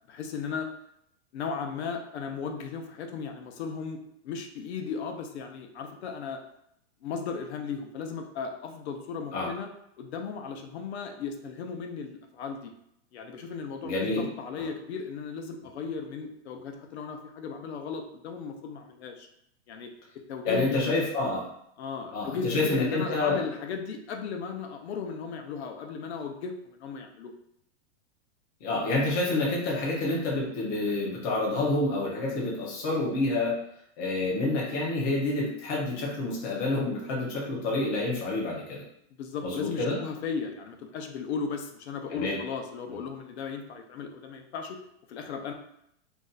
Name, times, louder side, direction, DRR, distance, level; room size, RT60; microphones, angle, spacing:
voice 1, 0.1-0.7 1.3-4.0 4.2-6.4 7.0-9.7 10.0-12.7 13.1-19.3 19.7-19.9 20.3-20.9 21.8-27.3 39.2-44.8 45.1-45.5, left 5 dB, 70° left, 4 dB, 0.6 m, -36 dB
voice 2, 13.8-14.3 14.6-14.7 20.4-21.5 22.1-23.5 28.6-33.6 34.0-38.8 39.4-40.0 42.1-42.4, left 2 dB, 20° left, -4 dB, 0.4 m, -28 dB
2.6 x 2.1 x 3.8 m, 0.74 s
supercardioid pair, 170°, 34 cm